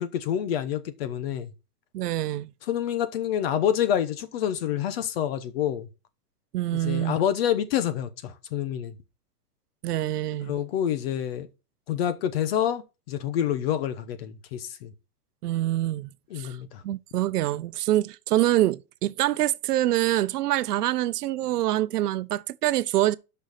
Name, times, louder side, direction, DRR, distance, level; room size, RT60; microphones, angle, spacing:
voice 1, 0.0-1.5 2.7-5.9 6.7-8.9 10.4-11.5 11.9-12.8 13.1-14.9 16.3-16.8, left 10 dB, 40° left, 0.9 m, -27 dB
voice 2, 1.9-2.5 6.5-7.2 9.8-10.5 15.4-16.1 16.4-16.6 16.8-23.1, right 14 dB, 85° right, 0.7 m, -25 dB
6.3 x 5.6 x 6.5 m
supercardioid pair, 165°, 46 cm